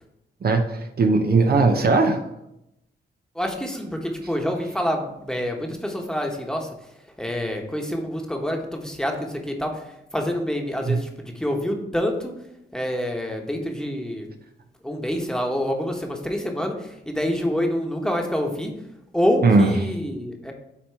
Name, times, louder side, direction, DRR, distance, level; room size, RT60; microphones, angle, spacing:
voice 1, 0.4-2.2 10.9-11.0 19.4-19.7, right 3 dB, 55° right, 5 dB, 0.7 m, -18 dB
voice 2, 3.3-6.7 7.2-12.4 12.7-14.3 14.8-18.8 19.1-20.5, equal, 5° left, 2 dB, 1.2 m, -27 dB
8.1 x 2.9 x 4.4 m, 0.83 s
cardioid pair, 60°, 19 cm